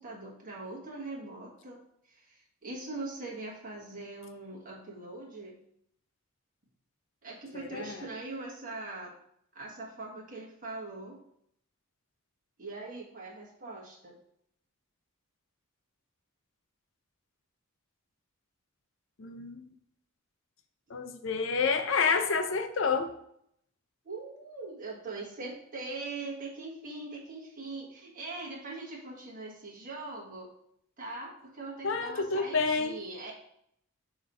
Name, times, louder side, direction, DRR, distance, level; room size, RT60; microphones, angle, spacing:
voice 1, 0.0-5.5 7.2-9.2 9.5-11.2 12.6-14.2 24.0-30.5 31.0-33.3, right 3 dB, 40° right, -3 dB, 1.5 m, -41 dB
voice 2, 7.5-8.0 19.2-19.7 20.9-23.1 31.8-33.0, left 5 dB, 60° left, 6 dB, 0.6 m, -29 dB
6.2 x 3.0 x 5.3 m, 0.72 s
head